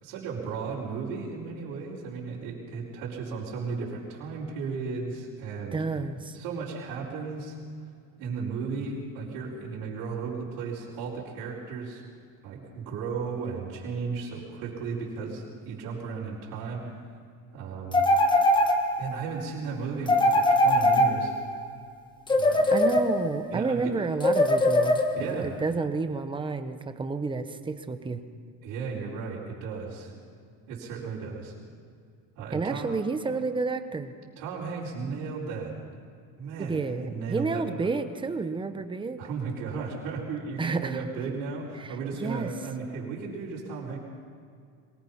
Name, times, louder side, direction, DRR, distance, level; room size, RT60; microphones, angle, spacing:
voice 1, 0.0-5.8 6.3-7.6 8.2-12.0 12.4-16.9 17.5-18.0 19.0-21.3 22.3-22.7 23.5-24.0 25.1-25.6 28.6-30.1 30.7-31.5 32.4-32.9 34.4-35.7 36.4-37.9 39.2-44.0, right 5 dB, 70° right, -7 dB, 4.7 m, -35 dB
voice 2, 5.7-6.4 22.7-28.2 32.5-34.1 36.6-39.2 40.6-41.0 41.8-42.5, right 4 dB, 15° right, 9 dB, 1.0 m, -30 dB
sound 1, 17.9-19.2 20.1-21.6 22.3-23.5 24.2-25.4, left 1 dB, 15° left, 1.5 m, -22 dB
22.5 x 20.0 x 5.7 m, 2.3 s
cardioid pair, 145°, 35 cm